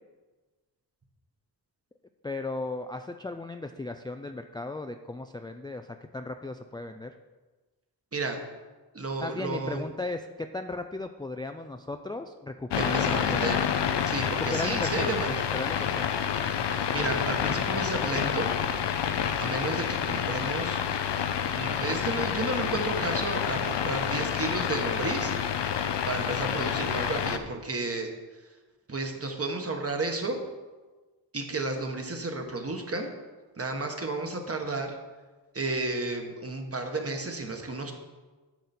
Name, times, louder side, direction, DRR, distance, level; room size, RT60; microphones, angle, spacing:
voice 1, 2.2-5.9 6.1-7.1 9.2-13.5 14.4-15.1 15.5-16.1, left 2 dB, 10° left, 6 dB, 0.4 m, -36 dB
voice 2, 8.9-9.8 12.8-13.6 14.0-15.3 16.9-18.5 19.4-20.8 21.5-25.3 26.1-28.1 28.9-30.4 31.3-33.1 33.6-35.0 35.5-37.9, right 2 dB, 35° right, 4 dB, 1.4 m, -32 dB
sound 1, 12.7-27.4, left 8 dB, 70° left, 0.7 m, -28 dB
10.0 x 6.8 x 4.3 m, 1.3 s
wide cardioid pair, 85°, 43 cm